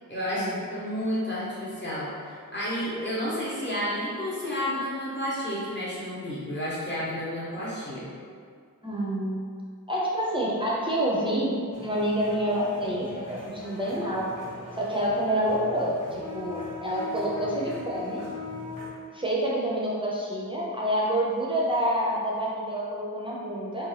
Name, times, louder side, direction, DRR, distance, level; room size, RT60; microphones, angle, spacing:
voice 1, 0.1-8.1, equal, 30° left, -8 dB, 0.9 m, -31 dB
voice 2, 8.8-9.5 9.9-14.3 14.8-18.2 19.1-23.9, equal, 15° right, -6 dB, 0.4 m, -28 dB
sound 1, 11.7-18.9, left 3 dB, 60° left, 0.9 m, -40 dB
2.5 x 2.2 x 3.1 m, 2.1 s
wide cardioid pair, 95°, 35 cm